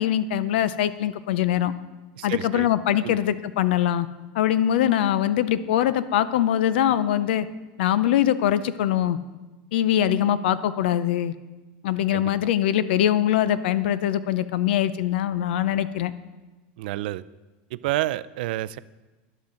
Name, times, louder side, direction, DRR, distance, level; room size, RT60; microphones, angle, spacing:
voice 1, 0.0-1.7 2.2-4.1 4.3-7.5 7.8-9.2 9.7-11.3 11.8-16.1, left 11 dB, 80° left, 15 dB, 0.6 m, -22 dB
voice 2, 2.2-2.7 3.0-3.2 12.1-12.3 16.8-17.2 17.7-18.8, right 16 dB, 65° right, 16 dB, 0.4 m, -29 dB
13.0 x 10.5 x 3.9 m, 1.2 s
supercardioid pair, 170°, 6 cm